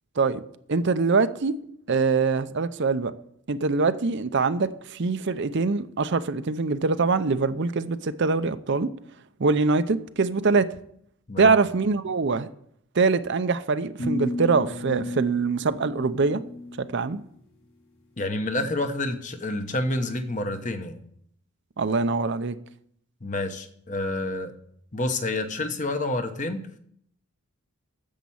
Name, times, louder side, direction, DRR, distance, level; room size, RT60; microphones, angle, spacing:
voice 1, 0.7-1.5 1.9-3.1 3.5-8.9 9.4-10.7 11.4-12.5 12.9-16.4 16.8-17.2 21.8-22.6, right 4 dB, 55° right, 0.6 m, -23 dB
sound 1, 14.0-17.1, left 2 dB, 65° left, 2.0 m, -33 dB
voice 2, 18.2-21.0 23.2-24.5 24.9-26.6, left 2 dB, 35° left, 1.0 m, -28 dB
10.0 x 7.4 x 7.0 m
head